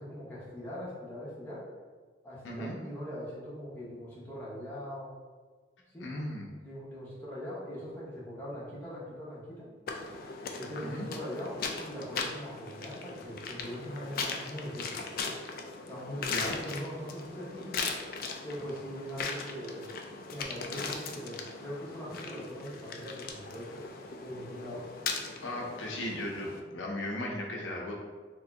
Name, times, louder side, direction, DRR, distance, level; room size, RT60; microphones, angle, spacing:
voice 1, 0.0-1.7 2.2-5.1 5.9-6.1 6.6-9.7 10.5-15.0 15.9-17.9 18.4-19.9 20.3-23.8 24.2-24.8 26.6-26.9, equal, 10° left, -9 dB, 0.9 m, -41 dB
voice 2, 2.4-2.8 6.0-6.5 10.9-11.1 16.3-16.5 25.4-28.0, left 1 dB, 90° left, -1 dB, 0.7 m, -36 dB
sound 1, 9.9-26.6, left 4 dB, 50° left, 0.3 m, -39 dB
3.0 x 2.7 x 3.4 m, 1.4 s
head